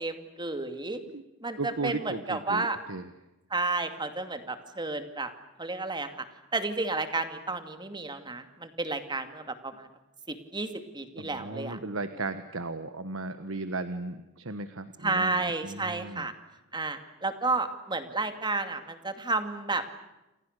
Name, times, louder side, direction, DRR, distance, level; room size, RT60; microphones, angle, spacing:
voice 1, 0.0-1.0 1.4-2.8 3.5-5.3 5.6-6.2 6.5-9.9 10.3-10.7 10.9-11.8 15.0-16.3 16.7-19.8, right 3 dB, 20° right, 8 dB, 2.5 m, -31 dB
voice 2, 1.6-3.1 11.2-16.3, right 3 dB, 75° right, 10 dB, 1.4 m, -36 dB
29.5 x 27.0 x 6.7 m, 0.98 s
head